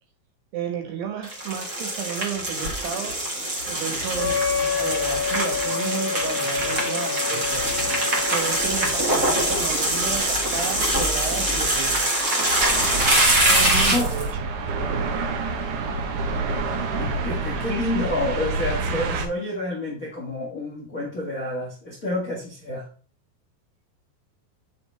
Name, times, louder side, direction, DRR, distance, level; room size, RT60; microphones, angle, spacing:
voice 1, 0.5-3.2 3.6-7.7 8.3-12.1 13.5-14.3, right 8 dB, 70° right, 3.2 m, -32 dB
sound 1, 1.2-14.2, right 1 dB, 50° right, 0.9 m, -23 dB
Wind instrument woodwind instrument, 4.2-9.8, left 6 dB, 70° left, 2.5 m, -29 dB
sound 2, 12.7-19.3, right 3 dB, 85° right, 1.7 m, -27 dB
voice 2, 17.0-22.9, left 1 dB, 90° left, 0.7 m, -29 dB
8.0 x 6.4 x 3.3 m
omnidirectional pair, 5.1 m